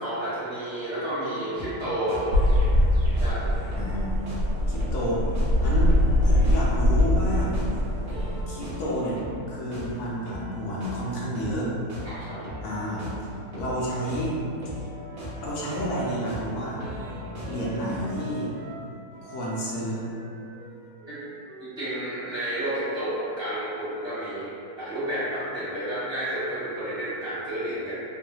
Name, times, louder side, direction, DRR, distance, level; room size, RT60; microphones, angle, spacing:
voice 1, 0.0-2.5 3.2-3.5 12.0-12.4 21.1-21.2 21.6-27.9, right 1 dB, 25° left, -14 dB, 0.7 m, -31 dB
sound 1, 1.3-18.0, equal, 45° right, 0.9 m, -39 dB
sound 2, 2.3-8.4, left 1 dB, 70° right, 1.2 m, -22 dB
voice 2, 3.8-4.2 4.7-5.3 5.6-5.9 6.2-7.5 8.5-9.2 9.5-11.7 12.6-13.0 13.5-14.4 15.4-16.8 17.5-18.5 19.2-20.0, equal, 75° left, -6 dB, 1.1 m, -30 dB
Wind instrument woodwind instrument, 14.9-18.9 19.1-23.1, right 2 dB, 90° right, 1.2 m, -46 dB
3.1 x 2.2 x 2.6 m, 2.6 s
omnidirectional pair, 1.7 m